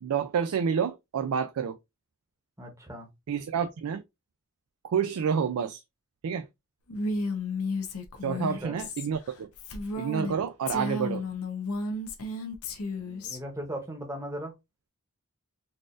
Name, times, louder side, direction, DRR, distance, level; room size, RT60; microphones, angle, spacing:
voice 1, 0.0-1.8 3.3-4.0 4.8-5.8 6.2-6.5 8.2-9.5 10.0-11.2, right 7 dB, 75° right, 0.4 m, -29 dB
voice 2, 2.6-3.1 8.2-8.8 13.0-14.5, right 1 dB, 15° right, 0.8 m, -38 dB
Female speech woman speaking, 6.9-10.3 10.7-13.4, left 2 dB, 80° left, 0.7 m, -33 dB
4.1 x 2.4 x 2.4 m
head